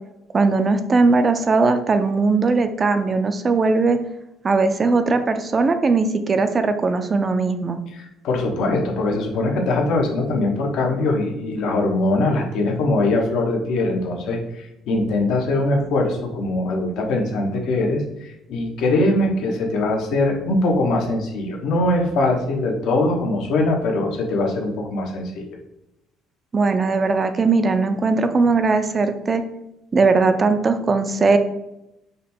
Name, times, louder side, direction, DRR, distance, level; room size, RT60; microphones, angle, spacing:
voice 1, 0.3-4.0 4.4-7.8 26.5-29.4 29.9-31.4, right 3 dB, 25° right, 9 dB, 0.4 m, -19 dB
voice 2, 7.9-25.5, left 2 dB, 70° left, 1 dB, 1.0 m, -22 dB
5.1 x 2.2 x 4.3 m, 0.88 s
cardioid pair, 135°, 0 cm